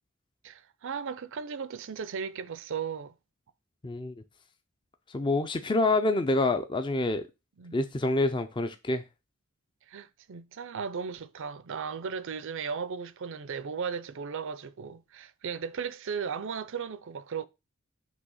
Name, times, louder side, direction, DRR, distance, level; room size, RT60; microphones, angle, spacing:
voice 1, 0.4-3.1 7.6-7.8 9.9-17.5, right 6 dB, 60° right, 0.5 m, -36 dB
voice 2, 3.8-4.2 5.1-7.2 7.7-9.0, left 2 dB, 20° left, 0.5 m, -27 dB
6.1 x 2.9 x 5.5 m
head